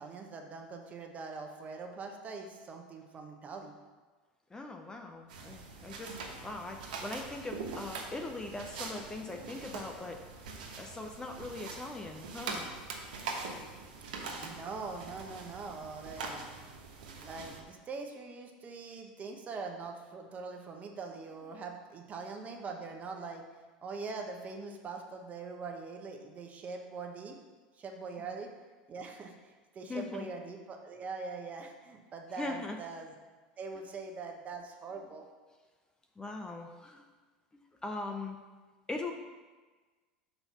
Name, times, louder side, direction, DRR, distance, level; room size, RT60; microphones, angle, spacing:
voice 1, 0.0-3.7 14.4-16.4 17.2-23.4 23.8-27.3 27.8-28.5 28.9-33.1 33.6-35.2, right 4 dB, 35° right, 3 dB, 1.0 m, -42 dB
voice 2, 4.5-6.2 6.4-10.2 10.8-12.7 28.2-28.4 29.9-30.3 32.4-32.8 36.2-37.0 37.5-38.4 38.9-39.1, left 2 dB, 15° left, 3 dB, 0.7 m, -40 dB
sound 1, 5.3-17.6, right 4 dB, 85° right, 1.1 m, -43 dB
5.7 x 4.4 x 5.6 m, 1.3 s
hypercardioid pair, 95°, 4 cm